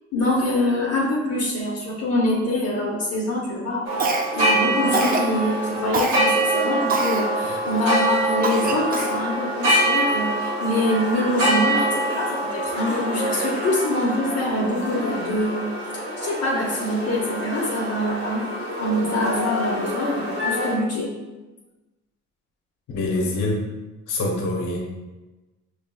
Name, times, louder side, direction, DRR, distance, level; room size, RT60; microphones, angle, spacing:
voice 1, 0.1-3.9 4.3-15.7 16.2-18.4 18.8-21.1, left 1 dB, 55° left, -4 dB, 0.9 m, -24 dB
sound 1, 3.8-20.7, right 1 dB, 70° right, 1.5 m, -25 dB
Cough, 4.0-4.5 4.9-5.3 5.9-6.2 6.9-7.2 7.8-7.9 8.4-9.2, right 3 dB, 30° right, 0.5 m, -24 dB
voice 2, 22.9-23.6 24.1-24.8, left 2 dB, 85° left, 0 dB, 1.0 m, -24 dB
5.0 x 3.2 x 2.3 m, 1.1 s
cardioid pair, 90°, 30 cm